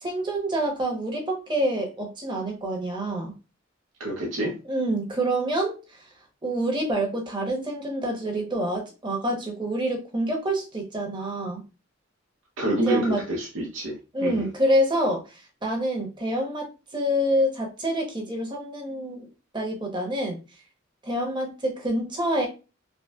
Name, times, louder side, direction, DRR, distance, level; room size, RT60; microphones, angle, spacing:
voice 1, 0.0-3.3 4.7-5.8 6.4-11.6 12.8-13.2 14.1-16.7 16.9-19.3 19.5-20.4 21.0-22.5, right 1 dB, 25° right, 1 dB, 0.9 m, -27 dB
voice 2, 4.0-4.5 12.6-14.5, right 1 dB, 85° right, -3 dB, 0.8 m, -27 dB
5.2 x 2.1 x 2.3 m, 0.30 s
head